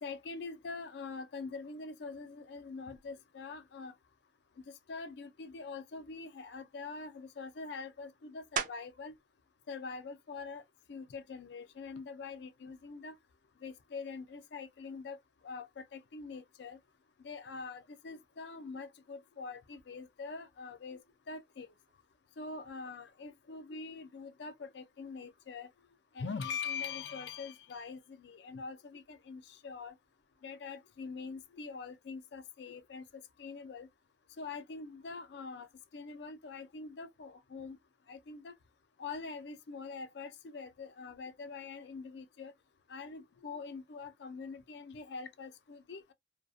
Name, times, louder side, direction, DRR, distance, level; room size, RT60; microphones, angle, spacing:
voice 1, 0.0-3.9 4.7-9.1 9.7-10.6 10.9-13.2 13.6-15.2 15.4-16.8 17.2-21.7 22.4-25.7 26.1-30.0 30.4-33.9 34.4-37.8 38.1-38.5 39.0-42.5 42.9-46.1, left 4 dB, 70° left, 0.4 m, -44 dB
sound 1, 8.6-9.1 9.7-14.1 14.6-19.8 20.1-25.7, right 7 dB, 45° right, 0.3 m, -48 dB
2.3 x 2.2 x 2.5 m
head